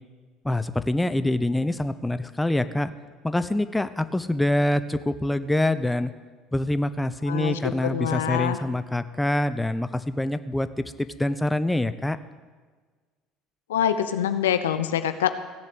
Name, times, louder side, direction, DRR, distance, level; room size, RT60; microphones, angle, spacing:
voice 1, 0.4-2.9 3.2-6.1 6.5-12.2, left 1 dB, 10° left, 12 dB, 0.8 m, -25 dB
voice 2, 7.3-8.6 13.7-15.3, left 10 dB, 85° left, 10 dB, 0.7 m, -25 dB
16.5 x 7.4 x 7.8 m, 1.4 s
hypercardioid pair, 70°, 0 cm